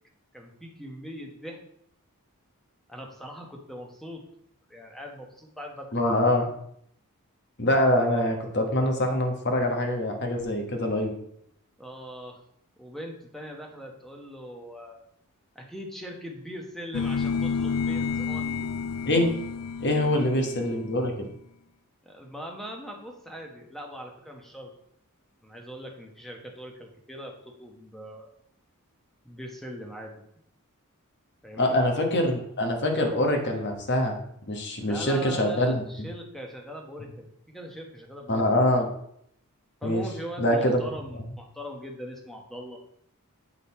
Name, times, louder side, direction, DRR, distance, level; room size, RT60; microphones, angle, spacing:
voice 1, 0.3-1.6 2.9-4.2 4.7-6.0 11.8-12.4 12.8-15.0 15.5-18.7 19.9-20.1 20.7-20.8 22.0-24.7 25.4-28.3 29.2-30.2 31.4-31.8 34.8-38.4 39.8-42.8, equal, ahead, 1 dB, 1.0 m, -41 dB
voice 2, 5.9-6.5 7.6-11.1 19.1-19.3 19.8-21.3 31.6-34.2 34.5-36.1 38.3-38.9 39.8-40.0 40.4-40.8, left 1 dB, 50° left, 4 dB, 1.3 m, -24 dB
sound 1, 16.9-21.0, left 5 dB, 75° left, 0.4 m, -30 dB
8.4 x 3.9 x 4.2 m, 0.71 s
head